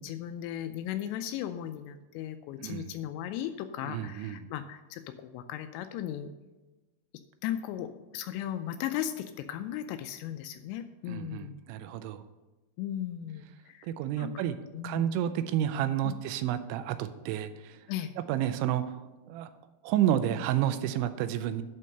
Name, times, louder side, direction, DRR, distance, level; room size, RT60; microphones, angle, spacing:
voice 1, 0.0-6.3 7.4-11.6 12.8-13.9 14.2-14.3 14.7-15.1 16.0-16.2 17.9-18.1, left 11 dB, 85° left, 9 dB, 2.6 m, -36 dB
voice 2, 2.6-2.9 3.8-4.5 11.1-12.3 13.8-14.6 14.8-17.9 18.3-19.5 19.8-21.6, right 11 dB, 85° right, 11 dB, 2.9 m, -30 dB
11.0 x 4.6 x 6.6 m, 1.1 s
omnidirectional pair, 5.4 m